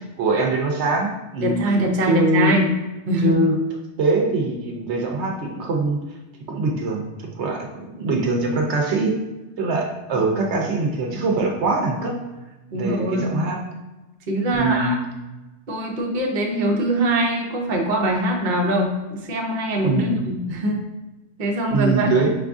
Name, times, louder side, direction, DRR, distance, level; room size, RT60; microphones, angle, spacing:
voice 1, 0.2-1.6 2.1-2.6 3.2-3.6 4.0-6.0 6.5-7.1 7.4-9.2 9.6-12.2 12.7-13.6 14.6-15.0 19.8-20.2 21.7-22.3, right 3 dB, 75° right, 1 dB, 0.9 m, -22 dB
voice 2, 1.4-2.7 3.1-3.4 12.7-13.3 14.3-15.0 15.7-20.8 21.4-22.1, right 1 dB, 50° right, 0 dB, 0.8 m, -22 dB
5.3 x 2.5 x 3.5 m, 1.1 s
omnidirectional pair, 1.2 m